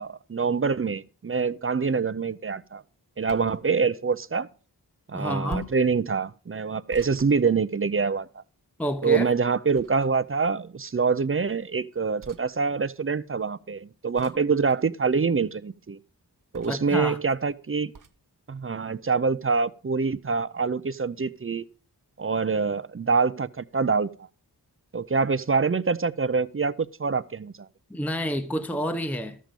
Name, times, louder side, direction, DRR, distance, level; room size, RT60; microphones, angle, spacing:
voice 1, 0.0-2.8 3.2-4.5 5.1-8.4 9.0-16.0 16.5-17.9 18.5-21.6 22.2-24.1 24.9-27.5, right 5 dB, 35° right, 0.5 m, -25 dB
sound 1, 3.3-3.6 5.5-5.9 6.9-8.1 9.7-10.3 12.2-12.5 14.1-14.5 16.5-16.9 17.9-18.2, right 4 dB, 50° right, 0.9 m, -45 dB
voice 2, 5.1-5.7 8.8-9.2 16.7-17.2 27.9-29.4, equal, 5° left, 0.8 m, -29 dB
13.0 x 7.5 x 5.2 m
wide cardioid pair, 65°, 40 cm